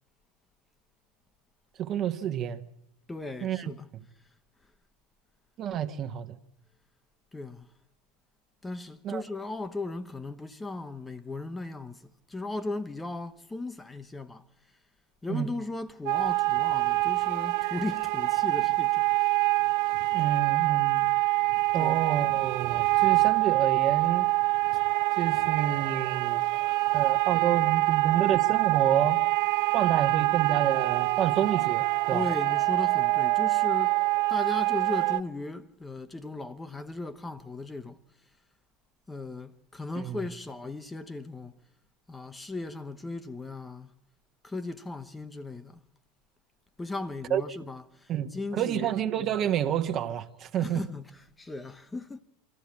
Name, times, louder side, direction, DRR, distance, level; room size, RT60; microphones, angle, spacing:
voice 1, 1.8-2.6 3.4-3.7 5.6-6.4 9.0-9.2 15.3-15.5 20.1-21.1 21.7-24.3 25.1-26.5 26.9-29.2 29.7-32.2 40.0-40.2 47.3-47.4 48.1-50.8, right 10 dB, 40° right, 1.3 m, -29 dB
voice 2, 3.1-3.9 4.6-4.7 7.3-7.7 8.6-14.8 15.2-19.3 21.7-22.0 32.1-34.0 34.3-38.0 39.1-41.5 42.1-43.9 44.4-45.8 46.8-48.9 49.2-49.3 50.6-52.2, left 2 dB, 15° left, 1.0 m, -37 dB
sound 1, 16.1-35.2, right 21 dB, 55° right, 0.7 m, -25 dB
25.5 x 13.5 x 8.5 m
figure-of-eight pair, 80°, 0 cm